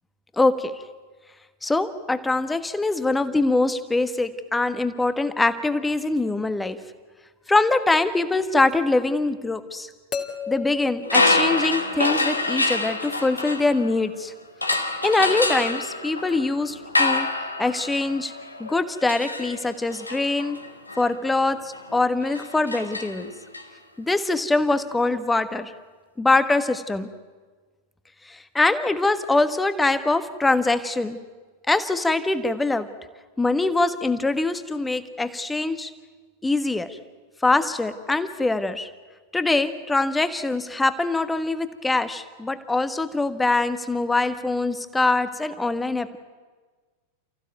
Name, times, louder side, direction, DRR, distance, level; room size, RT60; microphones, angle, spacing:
voice 1, 0.4-0.7 1.6-6.8 7.5-9.9 10.5-14.3 15.0-17.3 17.6-18.3 18.6-20.6 21.0-23.3 24.0-25.7 26.2-27.1 28.3-31.2 31.7-32.9 33.4-35.9 36.4-37.0 37.4-38.9 39.3-46.2, left 2 dB, 10° left, 11 dB, 1.4 m, -23 dB
sound 1, 8.7-8.8 10.1-12.2 14.7-15.2 16.3-16.4, left 5 dB, 30° left, 2.5 m, -35 dB
sound 2, 11.0-14.1 14.6-23.6, left 2 dB, 80° left, 1.7 m, -26 dB
29.5 x 15.5 x 9.4 m, 1.4 s
figure-of-eight pair, 90°, 0 cm